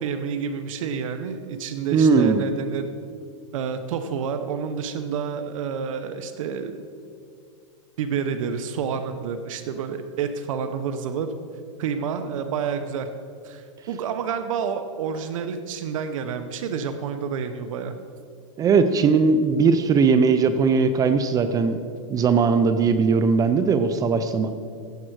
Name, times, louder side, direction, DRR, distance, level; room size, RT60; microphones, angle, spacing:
voice 1, 0.0-2.9 3.5-6.8 8.0-11.3 11.8-13.1 13.4-17.9, right 6 dB, 75° right, 8 dB, 0.8 m, -29 dB
voice 2, 1.9-2.4 18.6-21.8 22.1-24.5, right 5 dB, 20° right, 10 dB, 0.5 m, -19 dB
16.0 x 7.5 x 4.7 m, 2.4 s
supercardioid pair, 145°, 17 cm